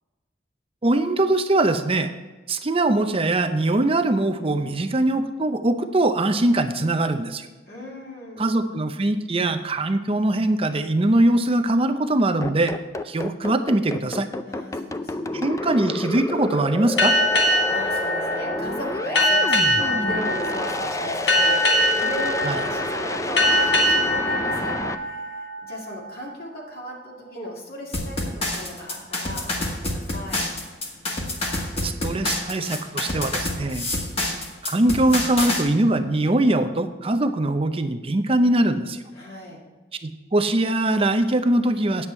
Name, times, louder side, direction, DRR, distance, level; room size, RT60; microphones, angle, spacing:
voice 1, 0.8-2.1 2.5-7.5 8.4-12.7 13.0-14.3 15.3-17.1 22.4-22.6 31.8-33.9 34.6-39.0 40.0-42.1, right 1 dB, 35° right, 9 dB, 0.6 m, -22 dB
voice 2, 7.7-8.6 14.5-15.6 17.3-30.4 39.1-39.6, left 1 dB, 60° left, -3 dB, 2.2 m, -37 dB
sound 1, 12.4-24.9, left 2 dB, 20° left, 0.4 m, -29 dB
sound 2, 17.0-26.1, left 1 dB, 80° left, 1.8 m, -23 dB
sound 3, 27.9-35.6, left 1 dB, 35° left, 1.7 m, -27 dB
9.7 x 7.9 x 4.4 m, 1.2 s
head